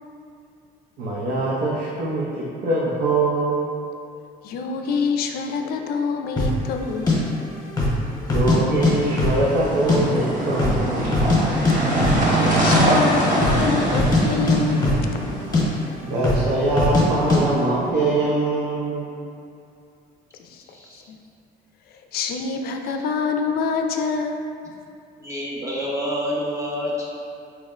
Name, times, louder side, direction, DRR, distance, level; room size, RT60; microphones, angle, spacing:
voice 1, 1.0-3.7 8.3-11.3 16.0-19.1, right 2 dB, 75° right, -6 dB, 0.6 m, -23 dB
voice 2, 4.4-7.4 12.3-15.1 20.4-21.2 21.9-24.4, left 5 dB, 65° left, 4 dB, 0.4 m, -26 dB
sound 1, 6.4-6.6 7.1-7.2 7.7-8.0 8.3-8.9 9.2-10.0 10.2-10.3 10.6-11.4 11.6-11.7 12.0-12.2 12.5-12.8 13.3-13.6 13.9-15.3 15.5-15.6 16.2-16.5 16.8-17.0 17.3-17.4, left 3 dB, 20° left, 0.9 m, -20 dB
sound 2, 8.8-15.8, right 1 dB, 50° right, 0.8 m, -23 dB
voice 3, 20.6-21.1 25.2-27.1, equal, 20° right, -5 dB, 0.8 m, -28 dB
4.4 x 2.1 x 3.6 m, 2.5 s
cardioid pair, 110°, 17 cm